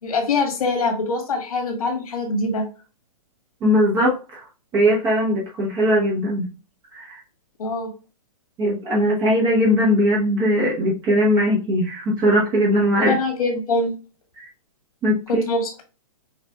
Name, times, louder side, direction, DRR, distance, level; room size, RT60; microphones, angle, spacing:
voice 1, 0.0-2.6 7.6-7.9 13.0-13.9 15.3-15.8, left 2 dB, 75° left, 2 dB, 1.9 m, -23 dB
voice 2, 3.6-4.4 4.7-6.5 7.0-7.2 8.6-13.2 14.4-14.5 15.0-15.4, equal, 20° right, -3 dB, 0.9 m, -19 dB
6.0 x 2.5 x 2.2 m, 0.33 s
hypercardioid pair, 140°, 19 cm